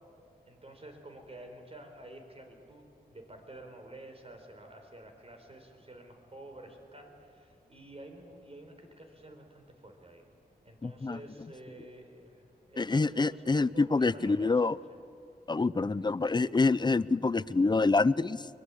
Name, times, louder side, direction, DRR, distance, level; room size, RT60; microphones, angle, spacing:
voice 1, 0.5-10.3 10.6-15.0 15.9-16.1, right 1 dB, 40° right, 4 dB, 4.3 m, -50 dB
voice 2, 10.8-11.2 12.8-14.8 15.5-18.5, left 3 dB, 25° left, 18 dB, 0.5 m, -26 dB
23.5 x 20.5 x 8.5 m, 2.5 s
cardioid pair, 65°, 16 cm